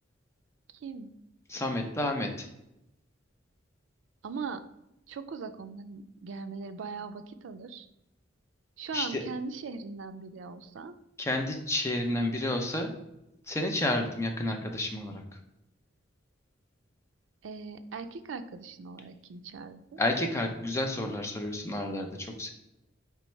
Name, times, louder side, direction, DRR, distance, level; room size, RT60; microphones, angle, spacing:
voice 1, 0.7-1.1 4.2-4.6 5.1-7.9 8.8-11.0 17.4-20.0, right 4 dB, 75° right, 10 dB, 0.4 m, -40 dB
voice 2, 1.5-2.5 8.9-9.3 11.2-12.9 13.5-15.2 20.0-22.5, left 1 dB, 15° left, 3 dB, 0.5 m, -30 dB
4.4 x 3.4 x 3.1 m, 0.87 s
head